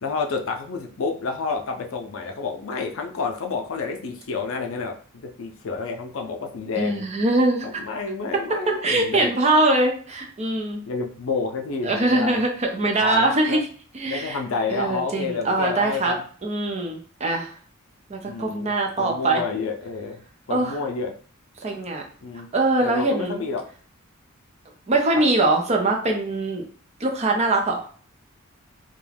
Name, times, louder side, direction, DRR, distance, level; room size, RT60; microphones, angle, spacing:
voice 1, 0.0-5.0 5.2-7.1 7.6-9.3 10.8-12.4 12.8-13.6 14.1-16.2 18.2-20.2 20.5-21.1 22.2-22.5 22.8-23.7 25.2-25.3, left 4 dB, 65° left, 3 dB, 0.5 m, -29 dB
voice 2, 6.8-7.8 8.8-10.8 11.8-13.6 13.9-14.4 14.7-16.1 16.4-17.5 18.1-19.4 20.5-20.8 21.6-22.0 22.5-23.4 24.9-26.6 27.0-27.9, right 2 dB, 30° right, 2 dB, 0.5 m, -22 dB
2.3 x 2.2 x 3.2 m, 0.43 s
head